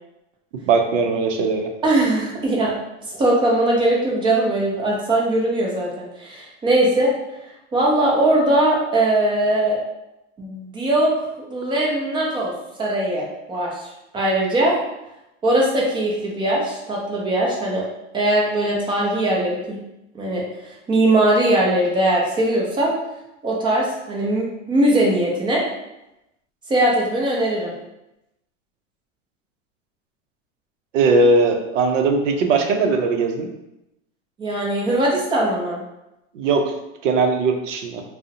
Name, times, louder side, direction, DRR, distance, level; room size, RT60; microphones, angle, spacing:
voice 1, 0.5-1.7 30.9-33.5 36.3-36.7 37.0-38.0, right 3 dB, 80° right, 4 dB, 0.6 m, -19 dB
voice 2, 1.8-2.7 3.1-7.1 7.7-9.8 10.4-11.1 11.4-12.5 12.8-13.7 14.1-14.8 15.4-17.8 18.1-19.8 20.1-22.9 23.4-25.6 26.7-27.7 34.4-35.8, right 1 dB, 15° right, -3 dB, 0.4 m, -20 dB
2.4 x 2.0 x 2.7 m, 0.90 s
hypercardioid pair, 120°, 37 cm